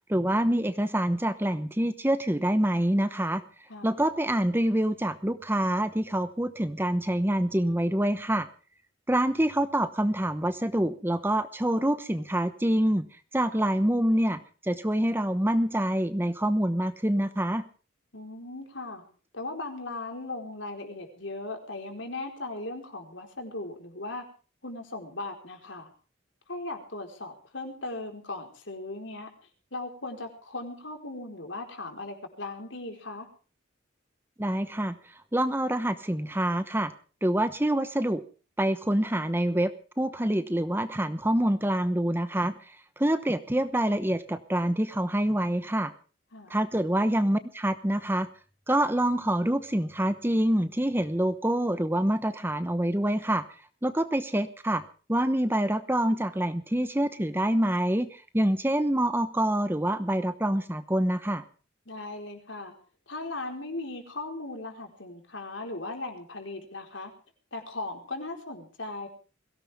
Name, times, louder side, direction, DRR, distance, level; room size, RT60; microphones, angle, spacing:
voice 1, 0.1-3.4 3.8-8.5 9.1-13.1 13.3-17.6 34.4-36.9 37.2-38.2 38.6-39.7 40.0-45.9 46.5-48.3 48.7-53.4 53.8-54.8 55.1-61.4, right 1 dB, 10° right, 11 dB, 1.0 m, -26 dB
voice 2, 18.1-19.0 19.3-24.2 24.6-25.9 26.5-29.3 29.7-33.3 46.3-46.6 61.9-62.7 63.1-67.1 67.5-69.1, left 2 dB, 65° left, 4 dB, 4.6 m, -38 dB
22.5 x 17.0 x 3.6 m, 0.37 s
head